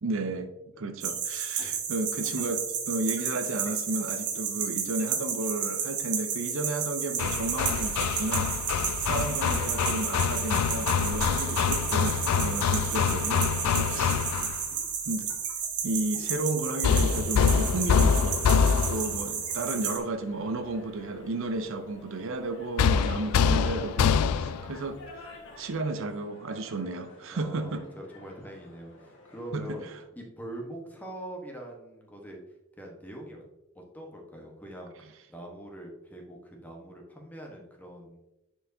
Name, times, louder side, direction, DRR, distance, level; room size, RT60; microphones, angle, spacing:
voice 1, 0.0-0.5 0.8-8.5 9.0-14.3 15.1-15.3 15.8-18.4 18.9-25.3 25.6-27.8 29.5-29.8, right 2 dB, 60° right, 8 dB, 0.6 m, -33 dB
sound 1, 1.0-20.0, right 7 dB, 85° right, 1.3 m, -32 dB
Hammer, 7.2-14.6 16.8-19.2 22.8-24.7, left 6 dB, 90° left, 0.3 m, -25 dB
voice 2, 13.6-14.5 18.7-18.9 24.4-24.6 27.3-29.9 30.1-32.4 32.8-33.4 33.7-34.9 35.3-38.2, right 1 dB, 10° left, 0 dB, 1.1 m, -44 dB
sound 2, 19.3-30.0, left 2 dB, 55° left, 1.5 m, -49 dB
9.9 x 4.5 x 2.7 m, 0.94 s
head